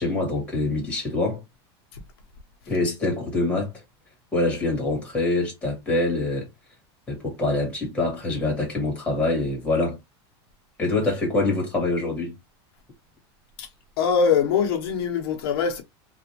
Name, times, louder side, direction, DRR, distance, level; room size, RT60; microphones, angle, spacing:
voice 1, 0.0-1.4 2.7-3.7 4.3-6.5 7.1-10.0 10.8-12.3, left 2 dB, 10° left, 1.3 m, -25 dB
voice 2, 14.0-15.8, left 6 dB, 70° left, 0.7 m, -22 dB
2.5 x 2.4 x 2.8 m
supercardioid pair, 165°, 14 cm